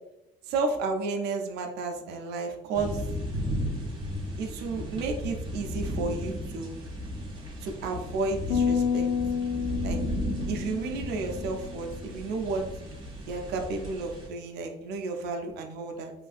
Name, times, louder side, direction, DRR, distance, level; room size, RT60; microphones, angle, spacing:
voice 1, 0.5-3.0 4.4-6.8 7.6-9.1 9.8-10.0 10.5-12.6 13.3-16.1, right 3 dB, 75° right, 3 dB, 0.5 m, -32 dB
sound 1, 2.7-14.3, equal, 30° right, 1.0 m, -35 dB
sound 2, 8.5-11.9, left 7 dB, 85° left, 0.5 m, -29 dB
3.2 x 2.5 x 2.4 m, 0.89 s
cardioid pair, 110°, 17 cm